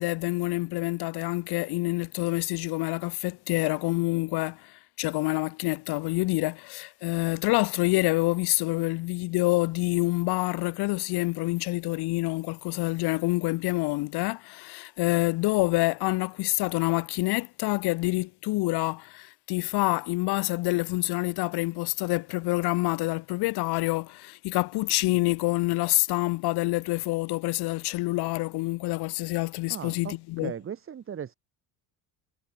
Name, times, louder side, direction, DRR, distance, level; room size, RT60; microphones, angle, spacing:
voice 1, 0.0-30.5, left 21 dB, 85° left, 1.9 m, -27 dB
voice 2, 29.7-31.3, right 8 dB, 35° right, 1.7 m, -38 dB
cardioid pair, 125°, 38 cm